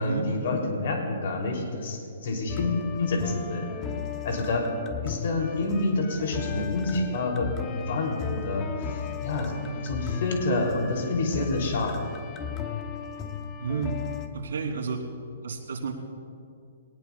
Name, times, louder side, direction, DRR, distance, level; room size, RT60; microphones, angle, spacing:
voice 1, 0.0-3.7 4.2-4.7 5.0-12.1, left 2 dB, 50° left, 1 dB, 3.0 m, -28 dB
sound 1, 2.5-14.3, left 7 dB, 15° left, 0.6 m, -36 dB
voice 2, 13.6-14.0 14.3-15.1 15.4-15.9, right 5 dB, 80° right, 1 dB, 3.0 m, -30 dB
21.5 x 19.0 x 2.3 m, 2.4 s
hypercardioid pair, 175°, 0 cm